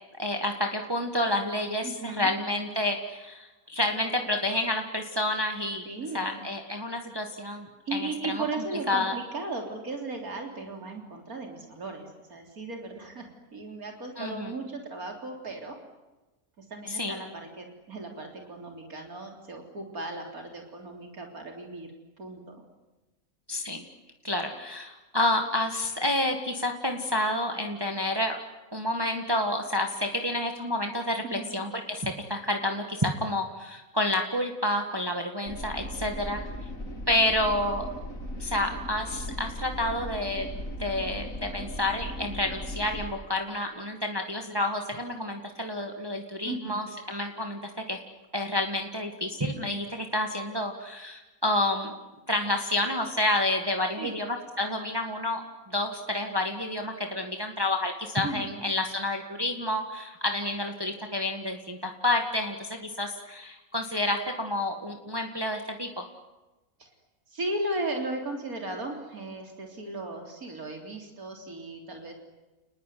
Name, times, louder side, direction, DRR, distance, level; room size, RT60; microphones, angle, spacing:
voice 1, 0.2-5.9 6.1-8.4 8.9-9.2 14.2-14.5 16.9-17.2 23.5-23.8 24.2-28.4 28.7-36.4 37.1-37.9 38.4-40.5 40.8-48.0 48.3-51.9 52.3-55.4 55.7-66.1, left 1 dB, 15° right, 4 dB, 1.9 m, -29 dB
voice 2, 1.8-2.3 5.9-6.4 7.9-15.8 16.6-21.9 22.2-22.6 31.2-31.5 46.4-46.8 54.0-54.1 58.2-58.6 66.8-66.9 67.3-72.1, right 2 dB, 85° right, 2 dB, 4.1 m, -36 dB
sound 1, 35.4-43.0, left 1 dB, 65° left, 4.2 m, -38 dB
30.0 x 20.5 x 9.5 m, 1.1 s
omnidirectional pair, 1.5 m